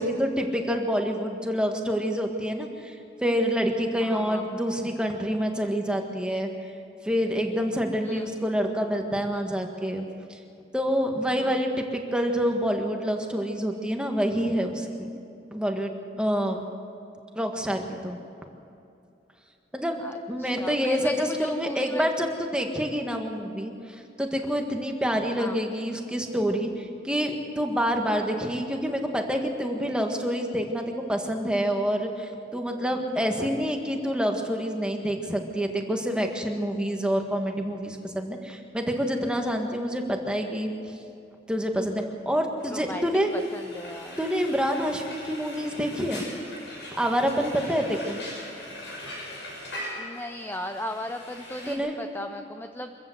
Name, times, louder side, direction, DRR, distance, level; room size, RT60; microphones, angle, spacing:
voice 1, 0.0-3.0 3.2-6.5 7.0-10.0 10.3-10.4 10.7-15.1 15.5-16.6 17.4-18.2 19.7-23.7 24.2-40.7 41.5-43.3 44.2-46.3 46.9-48.2 51.7-51.9, equal, 5° right, 3 dB, 1.8 m, -27 dB
voice 2, 4.0-4.6 8.0-8.3 11.4-11.6 20.0-22.0 25.4-25.6 32.9-33.7 42.7-43.0 43.3-44.2 49.9-53.0, left 1 dB, 10° left, 5 dB, 0.6 m, -37 dB
Frying (food), 42.6-51.7, left 1 dB, 85° left, 6.9 m, -41 dB
25.0 x 14.5 x 8.0 m, 2.6 s
head